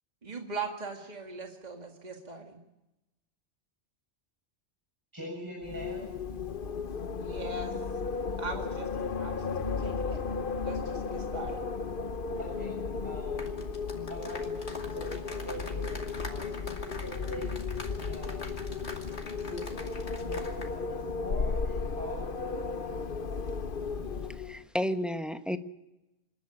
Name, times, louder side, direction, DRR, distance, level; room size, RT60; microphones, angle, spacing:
voice 1, 0.2-2.6 7.2-7.8 8.4-8.9 9.2-9.5 9.8-10.2 10.6-11.6, right 4 dB, 40° right, 3 dB, 2.1 m, -40 dB
voice 2, 5.1-6.1 12.4-12.8 13.0-13.4 14.1-14.5 14.9-17.6 18.1-18.6 19.4-19.6 20.2-22.9, equal, 15° right, -3 dB, 7.2 m, -42 dB
Wind, 5.6-24.6, left 5 dB, 50° left, 1.1 m, -34 dB
sound 1, 13.3-20.7 21.0-21.2, left 3 dB, 75° left, 2.6 m, -44 dB
voice 3, 24.4-25.6, equal, ahead, 8 dB, 0.9 m, -31 dB
26.5 x 12.5 x 9.7 m, 0.96 s
omnidirectional pair, 1.2 m